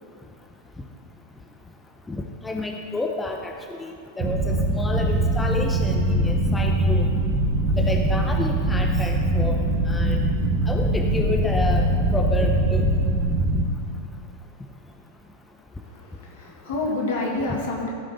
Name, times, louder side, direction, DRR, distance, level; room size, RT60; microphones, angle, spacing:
voice 1, 2.4-7.1 7.8-9.6 9.9-10.2 10.7-12.8 17.5-17.6, left 2 dB, 10° left, 2 dB, 0.7 m, -30 dB
sound 1, 4.2-13.6, right 1 dB, 30° right, 1.2 m, -22 dB
voice 2, 15.8-17.9, left 2 dB, 65° left, -1 dB, 2.1 m, -28 dB
15.5 x 5.4 x 4.1 m, 2.5 s
hypercardioid pair, 95°, 0 cm